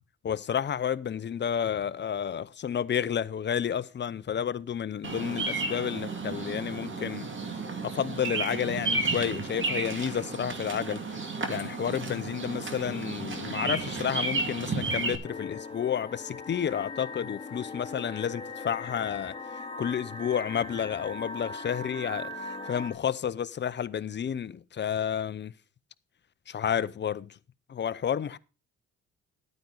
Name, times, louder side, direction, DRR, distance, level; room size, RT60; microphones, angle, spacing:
voice 1, 0.2-7.3 7.8-11.0 11.5-19.4 19.8-25.5 26.5-27.4 27.7-28.4, left 8 dB, 35° left, 0.7 m, -31 dB
Bird vocalization bird call bird song, 5.0-15.2, right 3 dB, 40° right, 2.2 m, -32 dB
sound 1, 15.2-22.9, left 3 dB, 15° left, 3.0 m, -39 dB
12.0 x 9.2 x 4.0 m
cardioid pair, 90°, 30 cm